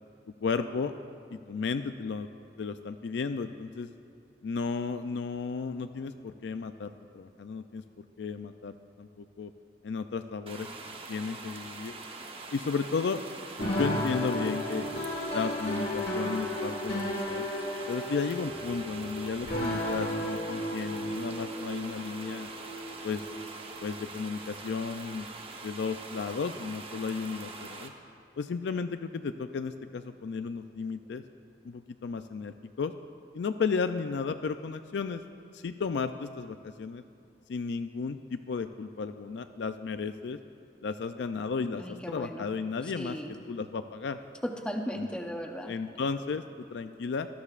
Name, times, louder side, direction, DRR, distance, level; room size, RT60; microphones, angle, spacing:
voice 1, 0.4-0.9 1.3-2.3 2.6-3.9 4.4-9.5 9.8-10.7 11.1-11.9 12.5-13.2 13.6-14.9 15.3-17.5 17.9-22.5 23.0-23.2 23.8-25.3 25.6-27.9 28.4-31.2 31.6-32.9 33.3-35.2 35.5-37.0 37.5-40.4 40.8-43.2 43.5-44.2 45.0-45.1 45.6-47.3, left 5 dB, 75° left, 9 dB, 0.4 m, -34 dB
sound 1, 10.5-27.9, right 3 dB, 30° right, 0.8 m, -44 dB
sound 2, 13.6-25.0, left 1 dB, 60° left, 1.6 m, -34 dB
voice 2, 41.8-42.5 42.8-43.4 44.4-45.8, equal, 5° left, 2 dB, 0.7 m, -36 dB
20.0 x 13.0 x 2.5 m, 2.6 s
head